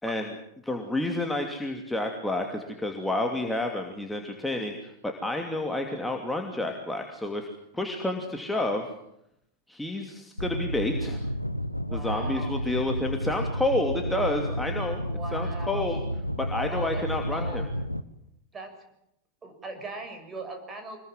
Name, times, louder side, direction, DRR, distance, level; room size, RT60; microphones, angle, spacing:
voice 1, 0.0-0.3 0.6-7.5 7.7-8.9 9.7-11.2 11.9-15.0 15.3-16.0 16.4-17.6, left 1 dB, 5° left, 2 dB, 2.7 m, -30 dB
engine damaged, 10.4-18.0, equal, 90° left, 1.1 m, -31 dB
voice 2, 11.9-12.6 15.0-16.0 16.7-17.0 17.3-17.7 18.5-18.7 19.4-21.0, right 2 dB, 20° right, 5 dB, 7.0 m, -40 dB
26.0 x 21.0 x 7.7 m, 0.77 s
figure-of-eight pair, 90°, 0 cm